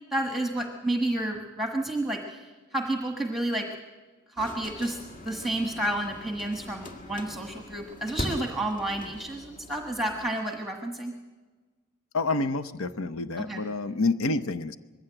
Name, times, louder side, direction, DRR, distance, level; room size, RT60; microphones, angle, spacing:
voice 1, 0.1-3.7 4.3-11.1 13.5-13.6, right 1 dB, ahead, 4 dB, 1.4 m, -30 dB
sound 1, 4.4-10.3, left 1 dB, 40° left, 2.1 m, -40 dB
voice 2, 12.1-14.8, left 3 dB, 75° left, 13 dB, 0.8 m, -28 dB
21.0 x 15.5 x 9.0 m, 1.3 s
head